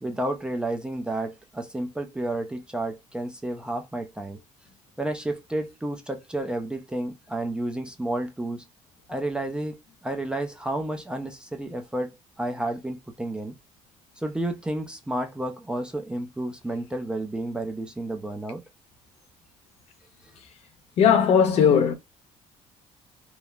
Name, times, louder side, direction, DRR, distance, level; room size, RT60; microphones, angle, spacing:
voice 1, 0.0-4.4 5.0-8.7 9.1-13.6 14.2-18.6, right 1 dB, 5° right, 0.4 m, -31 dB
voice 2, 21.0-21.9, left 7 dB, 55° left, 0.7 m, -18 dB
3.0 x 2.0 x 2.3 m
cardioid pair, 135°, 13 cm